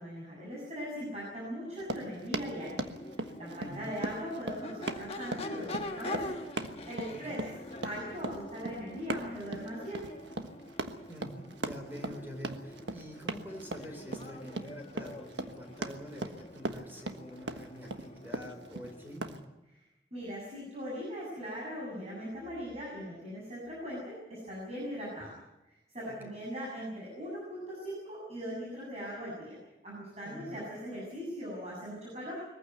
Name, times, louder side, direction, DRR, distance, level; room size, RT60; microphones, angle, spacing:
voice 1, 0.0-2.9 3.4-6.3 6.9-7.4 7.8-10.1 20.1-25.3 25.7-29.6 29.8-32.5, equal, 35° right, -4 dB, 7.4 m, -40 dB
Run, 1.7-19.4, right 2 dB, 90° right, 1.5 m, -39 dB
Crowd / Race car auto racing / Accelerating revving vroom, 2.2-19.3, left 1 dB, 35° left, 1.4 m, -45 dB
voice 2, 3.6-3.9 7.1-7.4 11.1-19.4 26.1-26.4 30.2-30.6, equal, 10° right, 3 dB, 4.1 m, -46 dB
22.5 x 15.0 x 9.5 m, 0.95 s
head